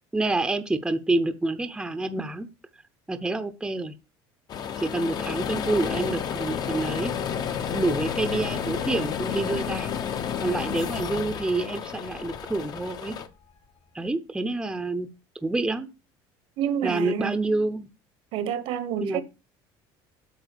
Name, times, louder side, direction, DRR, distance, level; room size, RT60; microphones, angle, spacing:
voice 1, 0.1-2.5 3.1-3.9 4.8-7.1 7.6-9.9 10.4-13.1 13.9-15.1 15.4-15.9 16.8-17.9 19.0-19.2, right 2 dB, 5° right, 0.8 m, -27 dB
sound 1, 4.5-13.3, left 8 dB, 40° left, 0.9 m, -31 dB
sound 2, 5.7-14.0, left 2 dB, 65° left, 2.0 m, -48 dB
voice 2, 16.6-17.3 18.3-19.2, right 9 dB, 60° right, 1.1 m, -28 dB
8.2 x 5.4 x 6.8 m
cardioid pair, 145°, 10 cm